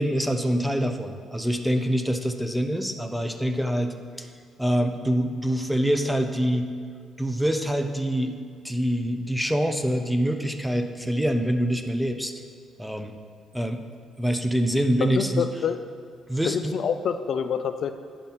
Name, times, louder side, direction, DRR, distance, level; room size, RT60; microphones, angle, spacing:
voice 1, 0.0-4.3 4.6-6.7 7.2-8.3 8.6-12.3 12.8-13.1 13.5-13.8 14.2-15.5 16.3-16.7, equal, 5° right, 6 dB, 0.7 m, -25 dB
voice 2, 15.2-15.9 16.4-17.9, left 7 dB, 65° left, 9 dB, 0.4 m, -27 dB
9.4 x 5.2 x 5.7 m, 2.1 s
cardioid pair, 90°, 0 cm